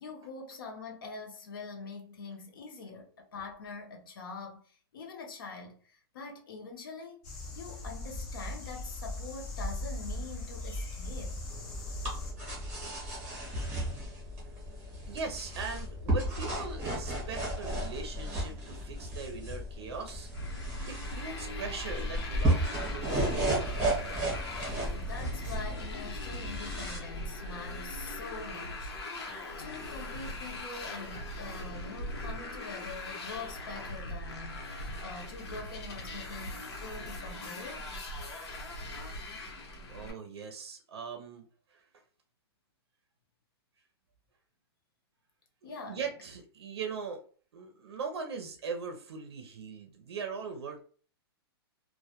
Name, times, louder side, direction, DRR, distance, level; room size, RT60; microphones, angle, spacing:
voice 1, 0.0-7.2 7.5-11.4 24.7-37.9 45.6-46.1, left 4 dB, 60° left, 0.6 m, -44 dB
sound 1, 7.2-12.3, left 1 dB, 20° left, 0.3 m, -38 dB
sound 2, 11.5-27.0, right 1 dB, 10° right, 0.7 m, -34 dB
voice 2, 15.1-20.3 20.9-24.2 39.9-41.8 45.6-47.2 47.5-50.8, right 5 dB, 80° right, 0.5 m, -40 dB
Motorcycle, 20.3-40.1, left 1 dB, 85° left, 0.9 m, -40 dB
2.1 x 2.1 x 2.8 m
hypercardioid pair, 180°, 13 cm